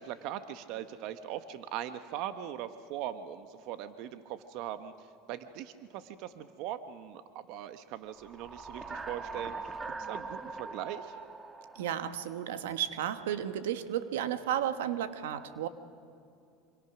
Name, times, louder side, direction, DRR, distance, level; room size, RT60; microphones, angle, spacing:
voice 1, 0.0-11.2, right 11 dB, 65° right, 10 dB, 1.1 m, -40 dB
sound 1, 8.1-12.8, right 3 dB, 20° right, 1.3 m, -42 dB
voice 2, 11.7-15.7, right 10 dB, 85° right, 10 dB, 1.3 m, -33 dB
27.0 x 26.0 x 6.0 m, 2.5 s
supercardioid pair, 100°, 0 cm